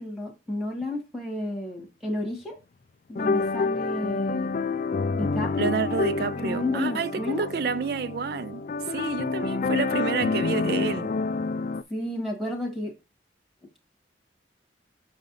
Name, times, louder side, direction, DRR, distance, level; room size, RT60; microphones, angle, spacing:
voice 1, 0.0-2.6 3.1-4.5 5.1-5.7 6.4-7.5 11.9-12.9, left 1 dB, ahead, 1.9 m, -31 dB
sound 1, 3.2-11.8, left 4 dB, 45° left, 0.3 m, -28 dB
voice 2, 5.6-11.1, right 5 dB, 55° right, 0.4 m, -29 dB
7.0 x 5.0 x 4.0 m
head